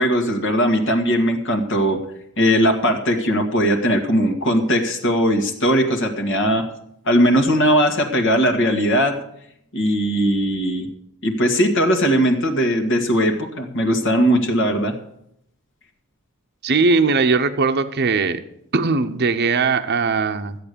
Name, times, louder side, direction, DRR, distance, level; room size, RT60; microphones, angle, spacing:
voice 1, 0.0-2.0 2.4-6.7 7.1-9.2 9.7-10.9 11.2-14.9, equal, 60° left, 4 dB, 1.8 m, -19 dB
voice 2, 16.6-18.4 18.7-20.6, right 4 dB, 50° right, 8 dB, 0.7 m, -19 dB
13.5 x 8.2 x 6.8 m, 0.74 s
head